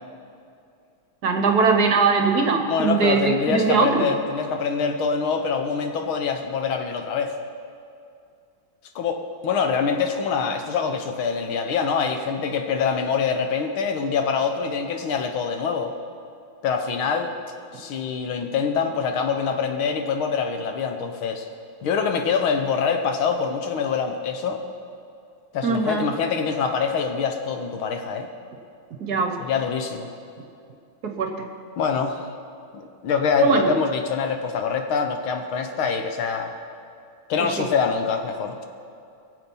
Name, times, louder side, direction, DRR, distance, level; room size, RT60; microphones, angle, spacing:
voice 1, 1.2-4.1 25.6-26.1 29.0-29.4 31.0-31.5 33.4-33.7 37.4-37.7, right 5 dB, 55° right, 5 dB, 1.3 m, -21 dB
voice 2, 2.7-7.3 9.0-15.9 16.6-17.3 17.7-21.5 21.8-24.6 25.5-28.3 29.4-30.1 31.8-32.3 32.7-36.6 37.3-38.6, left 6 dB, 80° left, 5 dB, 1.9 m, -25 dB
22.5 x 7.6 x 5.4 m, 2.4 s
omnidirectional pair, 2.3 m